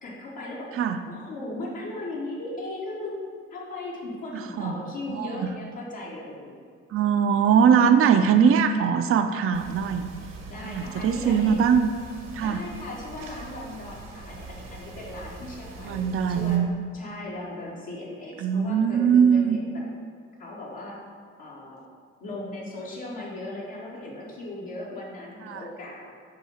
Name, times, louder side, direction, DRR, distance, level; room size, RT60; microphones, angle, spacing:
voice 1, 0.0-0.7 1.1-3.2 3.5-6.6 10.5-11.6 12.4-16.6 16.9-19.8 20.4-21.0 21.4-21.8 22.2-26.1, left 2 dB, 70° left, -6 dB, 1.6 m, -37 dB
voice 2, 4.3-4.7 5.1-5.5 6.9-10.1 10.6-11.9 12.3-12.6 15.8-16.7 18.4-19.6 25.5-25.6, right 7 dB, 40° right, 7 dB, 0.5 m, -21 dB
sound 1, 9.5-16.6, right 4 dB, 70° right, 1.1 m, -43 dB
7.5 x 2.7 x 5.6 m, 2.1 s
hypercardioid pair, 50°, 35 cm